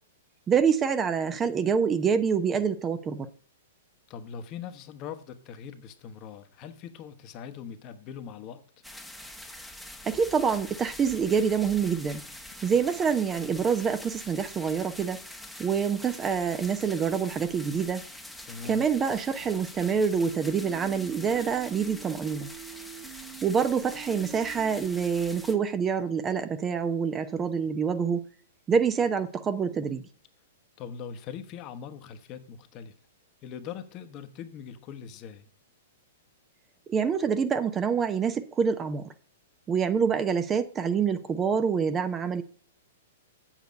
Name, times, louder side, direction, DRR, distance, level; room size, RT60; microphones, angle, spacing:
voice 1, 0.5-3.3 10.1-12.2 12.6-15.2 15.6-18.0 18.6-22.5 23.4-28.2 28.7-30.0 36.9-39.0 39.7-42.4, right 6 dB, 20° right, 0.8 m, -26 dB
voice 2, 4.1-8.6 18.4-18.9 30.8-32.9 33.4-35.5, left 7 dB, 35° left, 1.1 m, -41 dB
sound 1, 8.8-25.5, left 1 dB, ahead, 1.1 m, -45 dB
sound 2, 20.4-25.6, right 14 dB, 40° right, 1.8 m, -45 dB
8.0 x 7.5 x 5.3 m
figure-of-eight pair, 110°, 0 cm